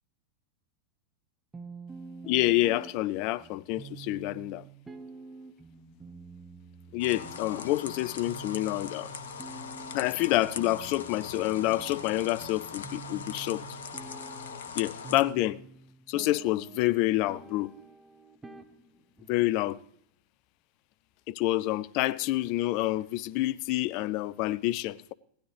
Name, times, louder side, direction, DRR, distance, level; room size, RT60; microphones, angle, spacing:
sound 1, 1.5-19.5, right 4 dB, 10° right, 0.9 m, -48 dB
voice 1, 2.3-4.6 6.9-9.1 9.9-13.6 14.7-15.6 16.1-17.7 19.3-19.8 21.3-25.1, left 16 dB, 45° left, 0.4 m, -28 dB
sound 2, 7.0-15.2, left 6 dB, 65° left, 1.0 m, -41 dB
17.0 x 13.0 x 3.3 m
figure-of-eight pair, 90°, 0 cm